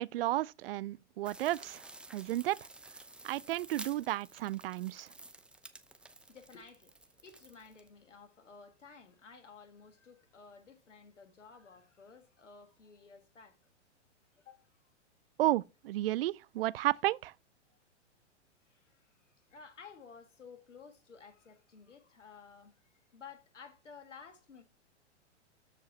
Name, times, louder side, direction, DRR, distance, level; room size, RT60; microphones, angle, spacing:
voice 1, 0.0-1.8 2.1-2.6 3.2-5.1 15.4-17.3, right 15 dB, 55° right, 0.4 m, -32 dB
sound 1, 1.2-7.9, right 2 dB, 5° right, 0.7 m, -52 dB
voice 2, 6.3-7.0 7.2-13.6 14.4-14.8 18.7-22.8 23.1-24.6, left 5 dB, 85° left, 1.7 m, -54 dB
13.5 x 4.7 x 2.8 m
hypercardioid pair, 110°, 36 cm